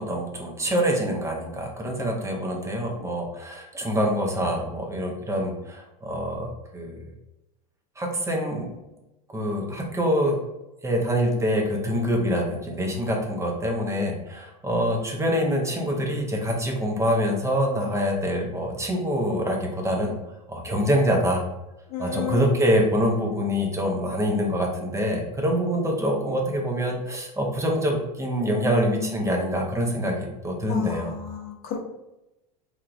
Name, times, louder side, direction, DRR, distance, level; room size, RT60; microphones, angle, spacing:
voice 1, 0.0-7.1 8.0-8.7 9.3-10.4 10.8-20.2 20.5-21.5 22.0-31.1, equal, 15° right, 1 dB, 0.6 m, -25 dB
voice 2, 21.9-22.6 28.5-29.2 30.7-31.8, left 7 dB, 45° left, 1 dB, 0.7 m, -32 dB
3.1 x 2.4 x 2.4 m, 0.95 s
hypercardioid pair, 100°, 21 cm